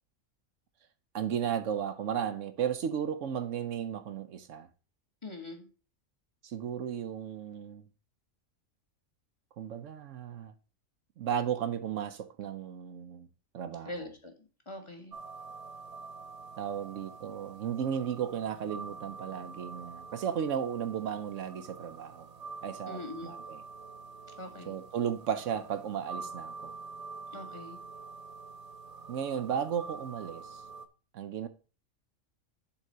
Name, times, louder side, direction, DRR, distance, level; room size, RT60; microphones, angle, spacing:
voice 1, 1.1-4.7 6.4-7.8 9.6-10.5 11.2-13.3 13.5-14.1 16.6-22.3 22.6-23.6 24.7-26.7 29.1-30.6 31.1-31.5, right 8 dB, 70° right, 1.0 m, -34 dB
voice 2, 5.2-5.7 13.8-14.3 14.7-15.2 22.9-23.3 24.4-24.8 27.3-27.8, left 2 dB, 25° left, 1.5 m, -42 dB
sound 1, 15.1-30.9, right 4 dB, 40° right, 0.6 m, -46 dB
7.3 x 4.0 x 6.5 m
omnidirectional pair, 1.4 m